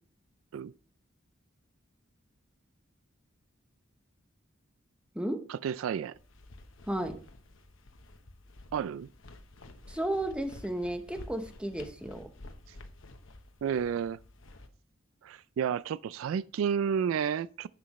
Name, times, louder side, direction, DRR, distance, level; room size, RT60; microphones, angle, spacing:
voice 1, 5.5-6.1 8.7-9.1 13.6-14.2 15.2-17.7, right 7 dB, 80° right, 0.3 m, -31 dB
sound 1, 6.1-14.7, left 2 dB, 70° left, 1.0 m, -51 dB
voice 2, 6.9-7.2 9.9-12.3, right 1 dB, 5° right, 0.9 m, -33 dB
10.0 x 7.4 x 3.1 m
head